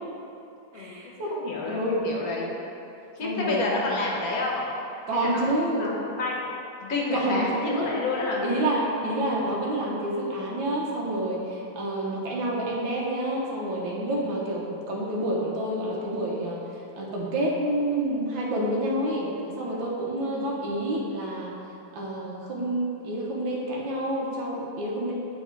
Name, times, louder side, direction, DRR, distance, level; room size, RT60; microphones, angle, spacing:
voice 1, 0.7-1.3 1.7-2.1 3.2-3.8 5.1-5.9 7.1-8.0 8.4-16.6 17.0-21.5 21.9-25.1, right 1 dB, 75° right, -4 dB, 1.8 m, -28 dB
voice 2, 1.3-2.5 3.2-4.7 5.1-6.5 6.8-8.4 20.1-20.4, left 3 dB, 55° left, -3 dB, 1.3 m, -30 dB
7.9 x 4.0 x 4.6 m, 2.7 s
omnidirectional pair, 2.1 m